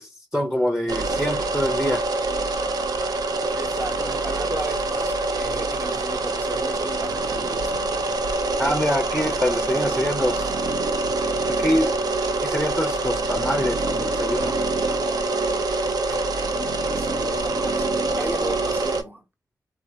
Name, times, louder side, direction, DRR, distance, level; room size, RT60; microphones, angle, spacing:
voice 1, 0.0-2.0 8.6-10.5 11.5-14.6, equal, ahead, 0.6 m, -25 dB
sound 1, 0.9-19.0, right 2 dB, 70° right, 0.7 m, -25 dB
voice 2, 3.5-8.1 9.2-10.8 16.1-16.2 16.6-19.2, right 1 dB, 30° right, 1.0 m, -35 dB
3.8 x 2.8 x 4.8 m
wide cardioid pair, 130°, 7 cm